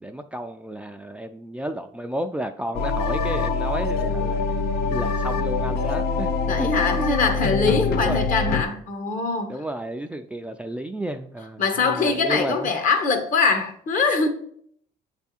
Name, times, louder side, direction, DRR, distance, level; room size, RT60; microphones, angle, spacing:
voice 1, 0.0-4.4 4.9-7.5 7.9-8.2 9.5-12.7, right 1 dB, 5° right, 0.4 m, -32 dB
sound 1, 2.7-8.6, left 4 dB, 70° left, 0.6 m, -24 dB
voice 2, 6.5-9.6 11.6-14.3, left 4 dB, 50° left, 1.2 m, -23 dB
8.0 x 3.5 x 4.2 m
cardioid pair, 110°, 17 cm